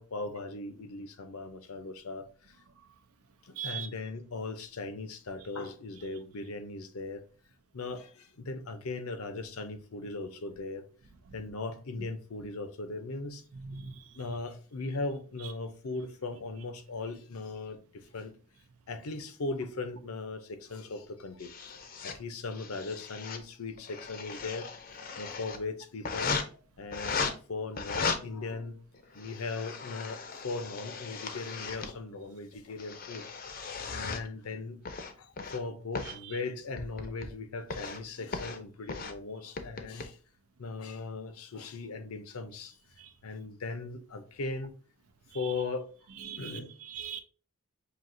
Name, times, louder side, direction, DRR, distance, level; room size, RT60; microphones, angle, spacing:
voice 1, 0.0-2.3 3.4-7.2 7.7-10.8 11.3-13.4 14.1-17.8 18.1-18.3 18.9-24.7 25.1-26.4 26.8-28.8 29.1-33.2 33.9-34.8 35.2-40.2 40.6-42.8 43.2-44.7 45.3-45.9 46.4-46.7, left 3 dB, 80° left, 0.7 m, -38 dB
voice 2, 3.6-3.9 13.5-14.1 36.0-36.4 43.0-43.1 46.2-47.2, right 8 dB, 85° right, 0.6 m, -41 dB
sound 1, 21.4-22.2 22.5-23.4 23.8-25.6 26.0-26.4 26.9-27.3 27.8-28.2 28.9-31.9 32.5-34.3 34.8-35.6 35.9-36.2 36.8-37.3 37.7-38.0 38.3-38.6 38.9-39.1 39.6-40.0, left 5 dB, 40° left, 0.5 m, -37 dB
5.8 x 2.7 x 2.6 m
head